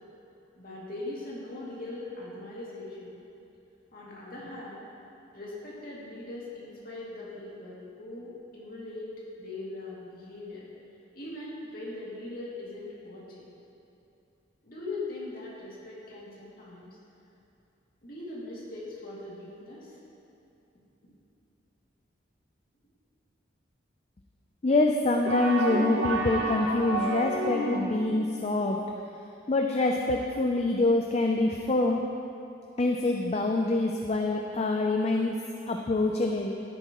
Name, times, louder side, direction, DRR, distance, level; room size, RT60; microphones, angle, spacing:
voice 1, 0.6-3.1 3.9-4.8 5.3-9.1 9.4-10.6 11.1-13.5 14.6-16.9 18.0-20.0, left 2 dB, 50° left, -7 dB, 2.5 m, -40 dB
voice 2, 24.6-28.8 29.5-32.0 32.8-35.3 35.7-36.6, left 2 dB, 35° left, 2 dB, 0.4 m, -25 dB
sound 1, 25.3-28.1, right 2 dB, 65° right, 1.0 m, -30 dB
13.0 x 9.8 x 3.0 m, 2.7 s
head